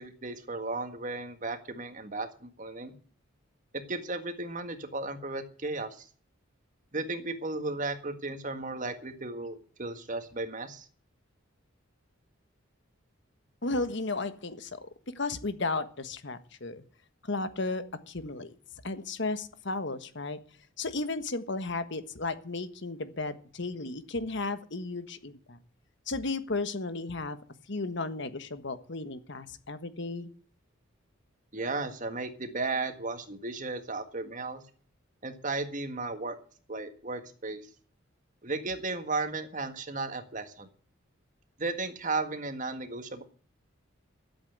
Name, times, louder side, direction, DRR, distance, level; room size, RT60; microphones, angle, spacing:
voice 1, 0.0-2.9 3.7-6.1 6.9-10.9 31.5-34.6 35.2-36.4 36.7-37.6 38.4-40.7 41.6-43.2, right 3 dB, 40° right, 8 dB, 1.7 m, -35 dB
voice 2, 13.6-14.9 15.1-16.8 17.2-18.5 18.8-20.4 20.8-25.6 26.1-27.4 27.7-30.3, left 3 dB, 60° left, 11 dB, 1.4 m, -34 dB
13.0 x 8.3 x 8.0 m, 0.43 s
head